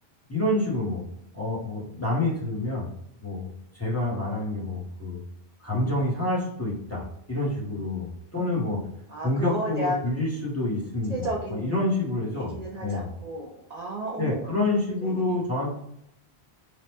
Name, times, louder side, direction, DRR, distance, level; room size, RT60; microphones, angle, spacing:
voice 1, 0.3-1.0 1.3-2.9 3.2-3.5 3.7-5.2 5.6-8.8 9.2-12.5 12.8-13.1 14.2-15.8, left 2 dB, 15° left, -6 dB, 0.7 m, -28 dB
voice 2, 9.1-10.0 11.1-11.8 12.3-14.5 15.0-15.4, right 1 dB, 55° right, -2 dB, 0.5 m, -33 dB
3.3 x 2.1 x 2.8 m, 0.77 s
omnidirectional pair, 1.1 m